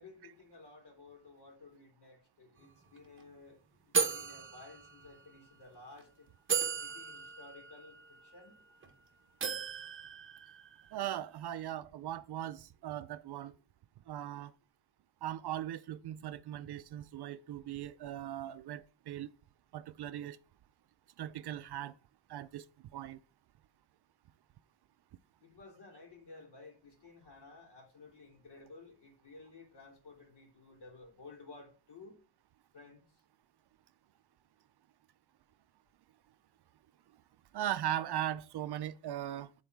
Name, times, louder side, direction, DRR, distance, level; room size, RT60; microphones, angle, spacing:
voice 1, 0.0-6.3 6.8-8.5 25.4-32.2 32.7-33.0, left 3 dB, 60° left, 3.0 m, -55 dB
sound 1, 2.6-2.7 3.0-3.2 3.9-5.4 6.0-6.1 6.5-8.9 9.4-11.0, right 6 dB, 30° right, 0.8 m, -36 dB
voice 2, 10.9-13.5 14.1-14.5 15.2-19.3 19.7-20.4 21.2-21.9 22.3-22.6 22.9-23.2 37.5-39.5, right 11 dB, 60° right, 0.5 m, -39 dB
9.0 x 4.0 x 4.6 m
wide cardioid pair, 170°, 44 cm